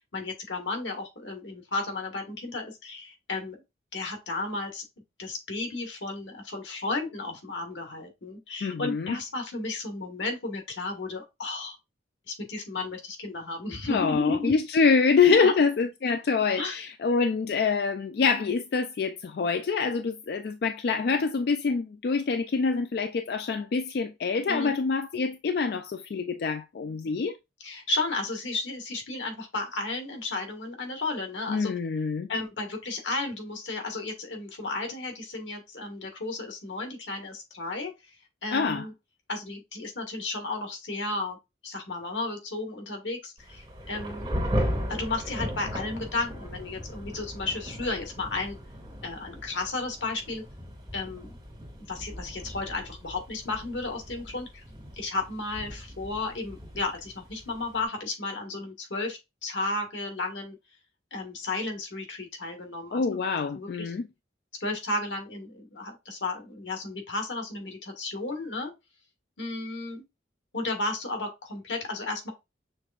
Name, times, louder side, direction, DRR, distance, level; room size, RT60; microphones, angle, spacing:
voice 1, 0.1-3.6 3.9-4.8 5.2-11.8 12.3-14.5 15.3-15.5 16.6-16.9 24.5-24.7 27.6-31.7 32.3-37.9 38.4-38.9 39.3-41.4 41.6-44.3 44.9-48.6 49.0-50.4 50.9-51.3 51.9-54.6 54.9-60.6 61.1-63.0 63.5-63.9 64.6-68.7 69.4-70.0 70.5-72.3, left 2 dB, 90° left, 1.5 m, -33 dB
voice 2, 8.6-9.2 13.9-27.4 31.5-32.3 38.5-38.9 62.9-64.0, left 5 dB, 60° left, 0.3 m, -25 dB
Thunder / Rain, 43.4-57.8, equal, 25° right, 2.5 m, -37 dB
6.5 x 3.3 x 2.4 m
head